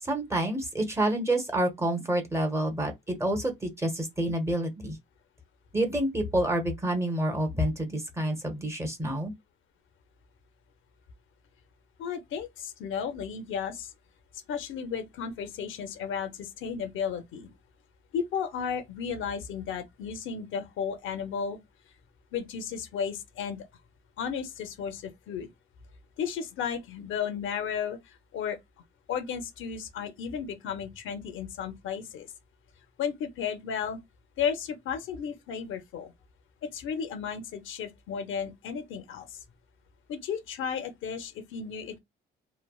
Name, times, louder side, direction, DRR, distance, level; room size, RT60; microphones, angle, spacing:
voice 1, 0.0-5.0 5.7-9.3, right 1 dB, 15° right, 1.0 m, -28 dB
voice 2, 12.0-13.9 14.5-17.5 18.1-21.6 22.3-23.7 24.2-25.5 26.2-28.6 29.1-32.3 33.0-34.0 34.4-36.1 36.6-39.4 40.1-42.0, left 7 dB, 85° left, 0.7 m, -34 dB
3.2 x 2.2 x 2.3 m
cardioid pair, 90°, 20 cm